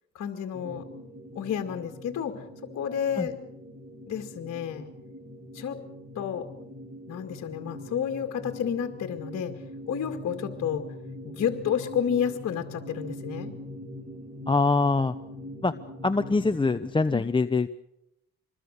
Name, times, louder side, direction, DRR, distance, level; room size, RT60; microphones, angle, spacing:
voice 1, 0.1-0.9 1.4-2.4 2.7-3.3 4.1-4.9 5.5-5.8 6.1-6.5 7.1-9.5 9.9-10.8 11.2-13.5 17.1-17.2, left 8 dB, 60° left, 4 dB, 2.2 m, -30 dB
sound 1, 0.5-17.1, left 1 dB, 25° right, 5.3 m, -42 dB
voice 2, 14.5-15.1 15.6-15.7 16.0-17.8, left 3 dB, 15° left, 9 dB, 0.8 m, -24 dB
26.0 x 21.0 x 6.6 m, 0.82 s
cardioid pair, 90°, 30 cm